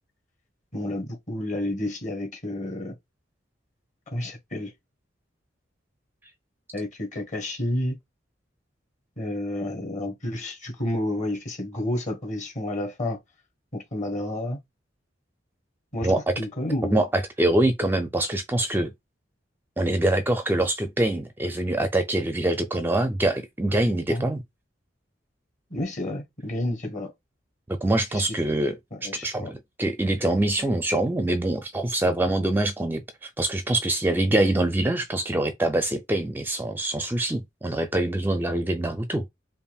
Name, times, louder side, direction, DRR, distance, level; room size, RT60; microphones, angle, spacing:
voice 1, 0.7-3.0 4.1-4.7 6.7-8.0 9.2-13.2 13.7-14.6 15.9-16.1 16.4-17.0 24.1-24.3 25.7-27.1 28.1-28.2 28.9-29.5, left 1 dB, 40° left, 1.5 m, -30 dB
voice 2, 16.9-18.9 19.8-24.4 27.7-28.8 29.0-39.3, right 1 dB, 10° right, 0.4 m, -24 dB
5.5 x 2.5 x 2.3 m
head